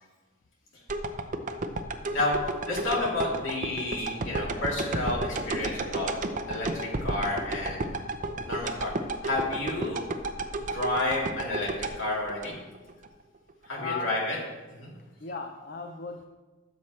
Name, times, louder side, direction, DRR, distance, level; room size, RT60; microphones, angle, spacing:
sound 1, 0.9-13.1 13.5-13.6, right 2 dB, 40° right, 0.6 m, -33 dB
voice 1, 2.7-6.1 6.5-8.0 8.4-8.9 9.2-10.0 10.7-12.6 13.7-14.4 14.8-14.9, left 2 dB, 65° left, -4 dB, 3.2 m, -30 dB
voice 2, 13.8-14.1 14.9-16.2, left 4 dB, 50° left, 4 dB, 0.7 m, -37 dB
14.5 x 7.2 x 3.2 m, 1.2 s
head